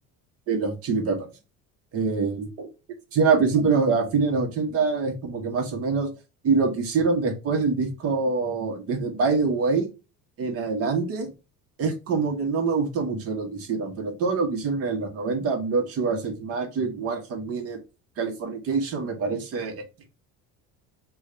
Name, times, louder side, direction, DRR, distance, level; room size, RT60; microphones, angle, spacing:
voice 1, 0.5-1.3 1.9-2.7 3.1-6.1 6.4-9.9 10.4-11.3 11.8-17.8 18.2-19.8, right 4 dB, 45° right, 5 dB, 1.1 m, -25 dB
5.0 x 2.4 x 3.8 m, 0.29 s
cardioid pair, 160°, 33 cm